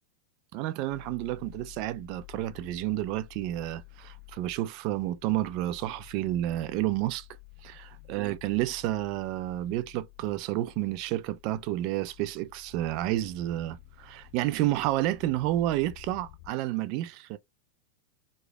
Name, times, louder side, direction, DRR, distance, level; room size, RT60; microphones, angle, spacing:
voice 1, 0.5-7.3 7.6-17.4, right 14 dB, 45° right, 0.3 m, -30 dB
sound 1, 0.9-16.5, left 23 dB, 45° left, 0.5 m, -51 dB
3.0 x 2.1 x 2.3 m
figure-of-eight pair, 90°, 0 cm